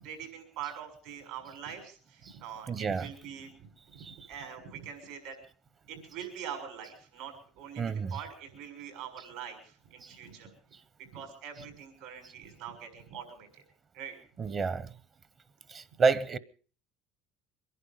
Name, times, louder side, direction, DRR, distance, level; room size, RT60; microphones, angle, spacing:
voice 1, 0.0-5.4 5.9-10.5 11.0-13.6 13.9-14.2, right 8 dB, 75° right, 6.3 m, -44 dB
voice 2, 2.7-3.1 4.0-4.1 7.8-8.1 10.0-10.1 14.4-14.9 15.7-16.4, right 5 dB, 40° right, 0.9 m, -29 dB
24.0 x 11.0 x 5.2 m
supercardioid pair, 85°, 0 cm